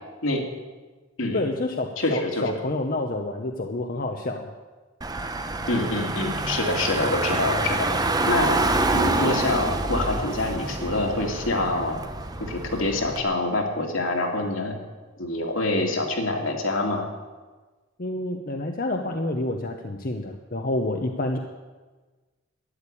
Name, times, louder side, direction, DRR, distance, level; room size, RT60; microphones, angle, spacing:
voice 1, 1.3-4.5 18.0-21.4, left 2 dB, 45° left, 3 dB, 0.9 m, -28 dB
voice 2, 2.0-2.4 5.7-7.9 8.3-8.6 8.9-12.0 12.4-14.7 15.2-17.1, left 2 dB, 70° left, 2 dB, 2.4 m, -26 dB
Car / Engine, 5.0-13.2, right 2 dB, 20° right, 0.8 m, -27 dB
13.0 x 10.5 x 8.6 m, 1.3 s
head